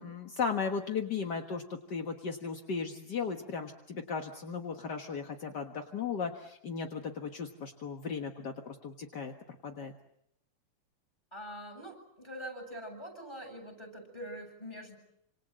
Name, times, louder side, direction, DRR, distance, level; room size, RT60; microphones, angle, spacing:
voice 1, 0.0-9.3 9.6-9.9, left 5 dB, 50° left, 4 dB, 1.3 m, -36 dB
voice 2, 11.3-15.0, equal, 5° left, 6 dB, 7.8 m, -44 dB
28.0 x 26.5 x 7.5 m, 0.76 s
omnidirectional pair, 3.9 m